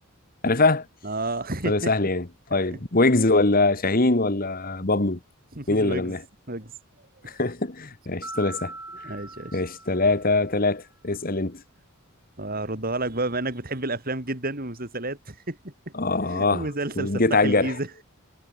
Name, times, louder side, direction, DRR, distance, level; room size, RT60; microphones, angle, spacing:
voice 1, 0.4-0.9 1.6-5.2 5.7-6.2 7.4-8.7 9.5-11.6 15.9-16.7 17.0-17.7, left 2 dB, 40° left, 1.7 m, -23 dB
voice 2, 1.0-1.9 2.7-2.8 5.6-6.1 6.5-6.7 7.2-7.4 9.0-9.6 12.4-15.7 16.3-18.0, right 2 dB, 45° right, 4.2 m, -31 dB
Mallet percussion, 8.2-10.6, right 2 dB, 10° right, 2.0 m, -41 dB
head